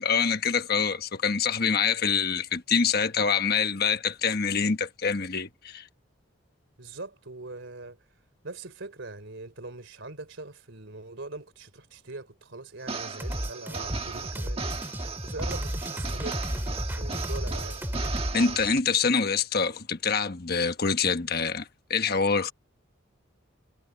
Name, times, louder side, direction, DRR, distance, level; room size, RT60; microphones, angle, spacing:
voice 1, 0.0-5.9 18.3-22.5, left 5 dB, 50° left, 1.2 m, -25 dB
voice 2, 6.8-8.0 8.4-14.7 15.2-16.5 16.9-17.8, right 2 dB, 65° right, 3.3 m, -41 dB
sound 1, 12.8-18.8, right 4 dB, 30° right, 1.5 m, -36 dB
sound 2, 13.2-18.4, equal, 10° right, 3.4 m, -33 dB
head